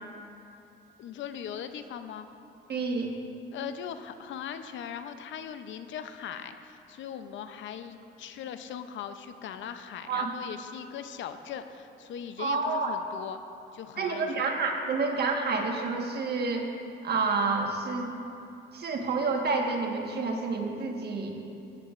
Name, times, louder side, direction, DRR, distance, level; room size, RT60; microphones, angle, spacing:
voice 1, 1.0-2.3 3.5-13.4 13.7-14.5, left 8 dB, 75° left, 9 dB, 0.6 m, -40 dB
voice 2, 2.7-3.1 10.1-10.4 12.4-12.9 14.0-16.7 17.0-18.1 18.7-21.3, right 4 dB, 55° right, 1 dB, 1.5 m, -29 dB
16.5 x 9.8 x 2.5 m, 2.8 s
cardioid pair, 90°, 20 cm